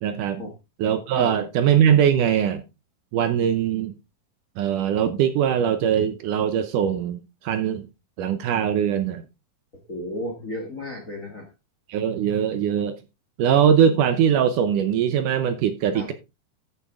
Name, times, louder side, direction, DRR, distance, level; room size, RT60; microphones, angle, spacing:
voice 1, 0.0-0.4 0.8-2.6 3.1-3.9 4.6-7.8 8.2-9.2 11.9-13.0 13.4-16.1, right 8 dB, 75° right, 2.1 m, -21 dB
voice 2, 9.9-11.5 15.9-16.1, left 1 dB, 50° left, 0.9 m, -33 dB
13.5 x 6.9 x 3.6 m
omnidirectional pair, 4.4 m